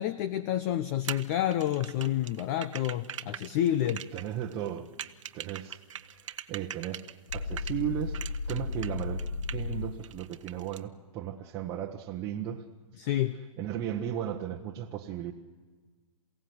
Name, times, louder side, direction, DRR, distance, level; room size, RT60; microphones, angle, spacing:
voice 1, 0.0-4.0 13.0-13.3, left 12 dB, 30° left, 14 dB, 0.7 m, -29 dB
sound 1, 1.0-7.8 8.1-9.7 10.0-10.8, right 10 dB, 60° right, 1.2 m, -41 dB
voice 2, 3.9-4.9 5.3-5.8 6.1-7.1 7.3-9.2 9.5-12.6 13.6-15.3, right 10 dB, 20° right, -2 dB, 1.2 m, -35 dB
sound 2, 7.3-9.9, left 3 dB, 75° left, 1.6 m, -34 dB
28.0 x 17.0 x 7.9 m, 1.4 s
hypercardioid pair, 155°, 18 cm